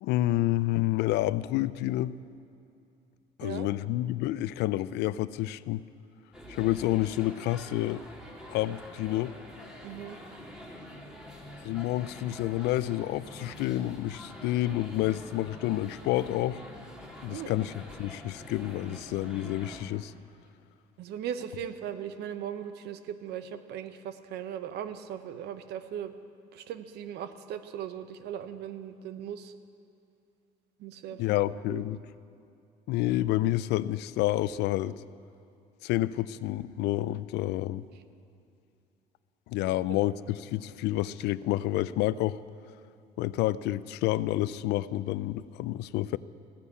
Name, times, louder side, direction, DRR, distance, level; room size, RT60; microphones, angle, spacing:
voice 1, 0.0-2.2 3.4-5.8 6.5-8.0 8.5-9.4 11.6-16.6 17.2-20.1 31.2-32.0 32.9-35.0 35.8-37.9 39.5-42.4 43.2-46.2, left 15 dB, 85° left, 17 dB, 0.5 m, -29 dB
sound 1, 6.3-19.8, equal, 5° right, 2.3 m, -46 dB
voice 2, 9.8-10.2 17.3-17.6 21.0-26.1 26.5-29.5 30.8-31.2 31.7-31.8, right 9 dB, 80° right, 11 dB, 0.9 m, -38 dB
15.0 x 9.9 x 8.4 m, 2.5 s
cardioid pair, 110°, 17 cm